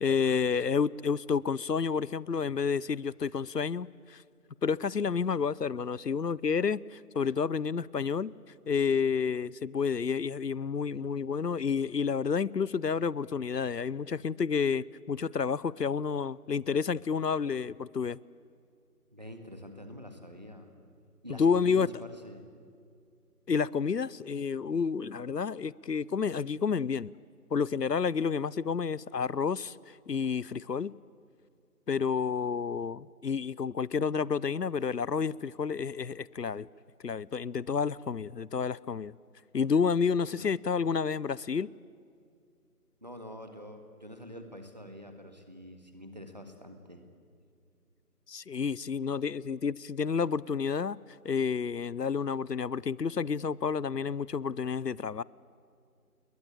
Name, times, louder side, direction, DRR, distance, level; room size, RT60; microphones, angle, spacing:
voice 1, 0.0-4.2 4.6-8.3 8.7-18.2 21.3-21.9 23.5-27.1 27.5-30.9 31.9-36.7 37.0-39.1 39.5-41.7 48.3-51.0 51.2-55.2, left 6 dB, 85° left, 0.7 m, -30 dB
voice 2, 19.1-20.7 21.2-22.4 40.2-40.5 43.0-47.0, equal, 25° right, 1.8 m, -46 dB
30.0 x 21.5 x 8.5 m
figure-of-eight pair, 170°, 47 cm